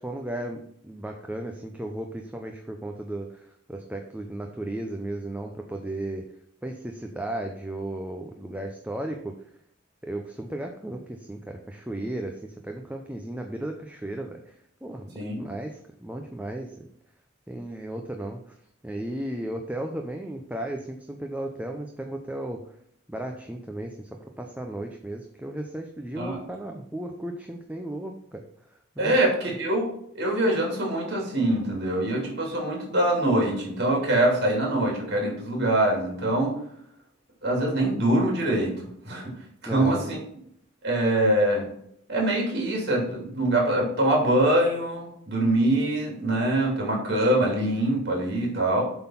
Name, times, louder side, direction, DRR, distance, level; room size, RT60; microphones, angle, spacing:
voice 1, 0.0-6.3 6.6-9.3 10.0-16.9 17.5-18.5 18.8-22.6 23.1-29.2 39.7-40.1, right 1 dB, 5° right, 3 dB, 0.6 m, -35 dB
voice 2, 29.0-29.8 30.1-36.5 37.4-39.3 39.6-40.2 40.8-41.7 42.1-48.8, right 1 dB, 55° right, -1 dB, 3.1 m, -24 dB
7.8 x 3.9 x 5.8 m, 0.71 s
head